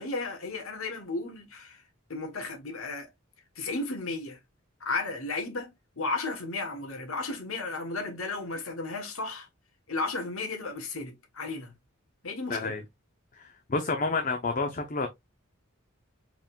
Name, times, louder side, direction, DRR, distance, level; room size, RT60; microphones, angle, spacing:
voice 1, 0.0-1.8 2.1-3.1 3.5-4.4 4.8-9.5 9.9-11.7 12.2-12.7, left 3 dB, 75° left, 1.4 m, -34 dB
voice 2, 12.5-12.8 13.3-15.1, left 3 dB, 35° left, 0.6 m, -29 dB
4.9 x 3.7 x 2.4 m
head